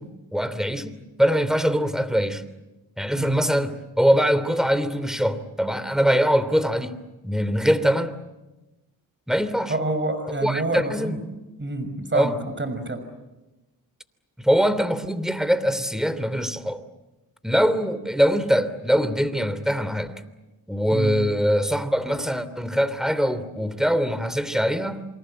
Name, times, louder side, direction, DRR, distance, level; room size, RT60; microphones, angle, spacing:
voice 1, 0.0-2.5 3.0-8.1 9.3-9.7 10.4-11.3 12.1-12.3 14.4-16.8 17.4-20.2 20.7-25.1, equal, ahead, 3.1 m, -23 dB
voice 2, 9.7-11.2 11.6-13.0 20.9-21.2, right 2 dB, 30° right, 6.1 m, -27 dB
28.0 x 25.0 x 7.9 m
supercardioid pair, 50°, 38 cm